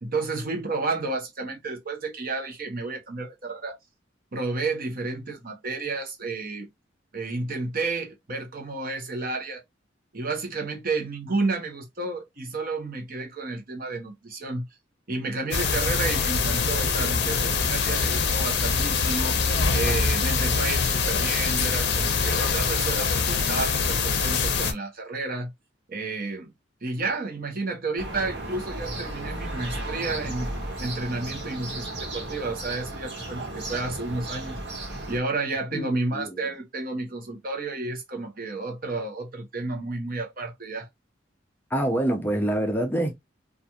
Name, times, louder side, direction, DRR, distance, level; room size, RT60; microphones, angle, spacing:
voice 1, 0.0-3.8 4.3-6.7 7.1-9.6 10.1-14.7 15.1-19.4 19.7-25.5 25.9-26.5 26.8-34.6 34.9-40.9, right 3 dB, 50° right, 0.9 m, -31 dB
sound 1, 15.5-24.7, left 5 dB, 60° left, 0.6 m, -24 dB
sound 2, 28.0-35.2, right 1 dB, 65° right, 1.3 m, -34 dB
voice 2, 35.7-36.3 41.7-43.1, right 1 dB, 10° left, 0.5 m, -26 dB
2.9 x 2.4 x 2.3 m
head